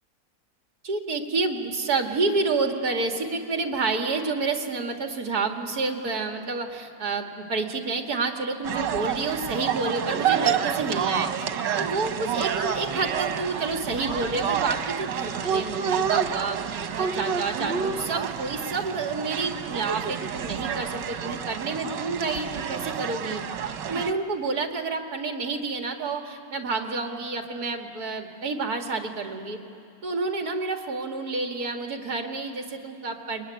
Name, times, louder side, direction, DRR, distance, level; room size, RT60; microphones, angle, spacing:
voice 1, 0.8-11.5 11.8-16.6 16.9-23.4 23.9-29.6 30.0-33.4, right 3 dB, 60° right, 4 dB, 2.3 m, -29 dB
sound 1, 8.6-24.1, right 7 dB, 90° right, 1.7 m, -29 dB
24.5 x 22.0 x 10.0 m, 2.8 s
omnidirectional pair, 1.9 m